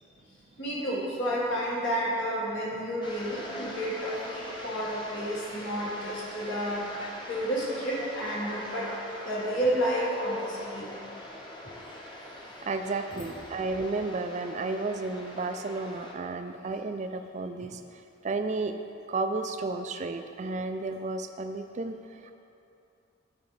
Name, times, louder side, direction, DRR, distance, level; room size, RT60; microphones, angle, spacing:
voice 1, 0.6-8.9 9.2-10.9 11.6-11.7 13.1-13.2, equal, 70° left, -7 dB, 1.7 m, -31 dB
sound 1, 3.0-16.1, left 1 dB, 25° left, 0.9 m, -43 dB
voice 2, 12.6-17.8 18.2-18.8 19.1-22.3, right 3 dB, 35° right, 8 dB, 0.4 m, -32 dB
11.5 x 5.0 x 3.2 m, 2.7 s
head